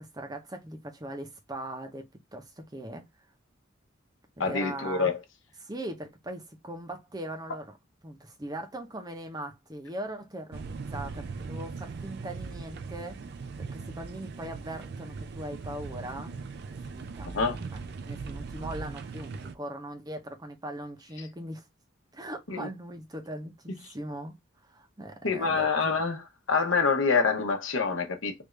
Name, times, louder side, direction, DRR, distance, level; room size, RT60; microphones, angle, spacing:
voice 1, 0.0-2.0 2.3-3.0 4.4-5.1 5.6-7.7 8.0-13.2 13.6-16.3 16.9-17.3 17.7-21.6 22.1-24.4 24.7-26.0, right 1 dB, 20° right, 0.7 m, -40 dB
voice 2, 4.4-5.2 17.3-17.6 22.5-22.7 25.2-26.2 26.5-28.3, left 4 dB, 75° left, 0.9 m, -26 dB
sound 1, 10.5-19.5, right 4 dB, 50° right, 0.4 m, -39 dB
3.4 x 2.5 x 3.2 m
head